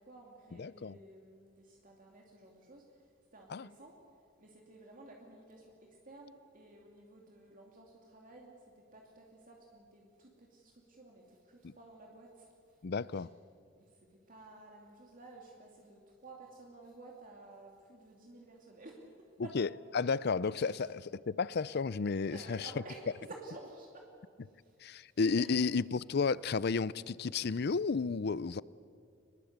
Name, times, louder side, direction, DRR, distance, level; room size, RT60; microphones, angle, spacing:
voice 1, 0.0-4.0 4.4-12.8 13.1-13.3 13.7-19.7 20.7-21.0 22.3-24.1 24.6-25.5, right 2 dB, 45° right, 2.6 m, -54 dB
voice 2, 0.5-1.0 3.5-3.7 11.6-11.7 12.8-13.3 19.4-19.7 19.9-22.7 24.8-28.6, left 4 dB, 55° left, 0.5 m, -32 dB
25.0 x 21.0 x 8.1 m
head